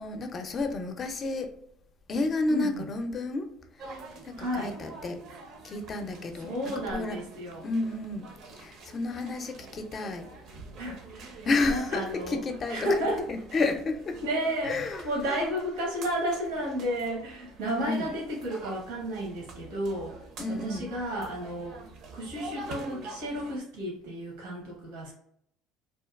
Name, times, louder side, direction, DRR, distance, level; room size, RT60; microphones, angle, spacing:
voice 1, 0.0-1.5 2.1-3.5 4.2-5.2 5.6-6.5 6.9-7.2 7.6-8.3 8.5-10.3 11.4-12.8 13.3-14.2 14.6-15.5 17.8-18.1 20.4-20.9, left 3 dB, 40° left, 6 dB, 0.4 m, -31 dB
voice 2, 2.5-2.9 4.4-4.7 6.4-7.7 10.8-12.4 12.7-13.3 14.2-14.8 15.0-20.2 20.5-21.8 22.1-25.1, equal, 85° right, -2 dB, 0.9 m, -32 dB
sound 1, 3.8-23.6, right 3 dB, 60° right, 0.6 m, -46 dB
2.7 x 2.2 x 2.3 m, 0.71 s
supercardioid pair, 100°, 0 cm